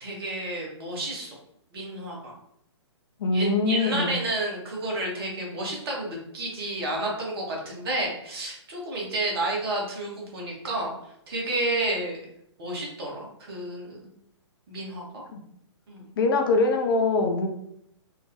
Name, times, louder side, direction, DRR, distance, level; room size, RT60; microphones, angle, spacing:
voice 1, 0.0-1.3 1.7-2.4 3.3-10.9 11.3-12.3 12.6-14.1 14.7-15.2 15.9-16.1, right 2 dB, 55° right, -2 dB, 1.3 m, -31 dB
voice 2, 3.2-4.3 15.3-15.4 16.2-17.5, left 3 dB, 50° left, 4 dB, 0.5 m, -23 dB
3.8 x 2.2 x 2.7 m, 0.73 s
figure-of-eight pair, 120°, 15 cm